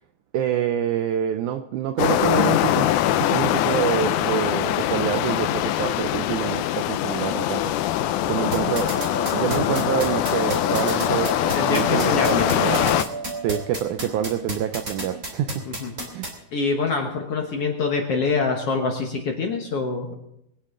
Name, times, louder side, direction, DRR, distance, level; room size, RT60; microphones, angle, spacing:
voice 1, 0.3-8.9 9.3-11.3 11.7-13.0 13.4-15.6 16.1-16.3, right 10 dB, 85° right, 9 dB, 1.7 m, -26 dB
sound 1, 2.0-13.0, left 13 dB, 85° left, 1.7 m, -23 dB
sound 2, 8.3-13.7, right 4 dB, 60° right, 3.1 m, -34 dB
sound 3, 8.5-16.3, right 1 dB, 25° right, 3.1 m, -31 dB
voice 2, 11.5-12.6 15.7-15.9 16.5-20.1, left 4 dB, 60° left, 2 dB, 1.6 m, -25 dB
22.5 x 9.8 x 3.7 m, 0.82 s
omnidirectional pair, 4.2 m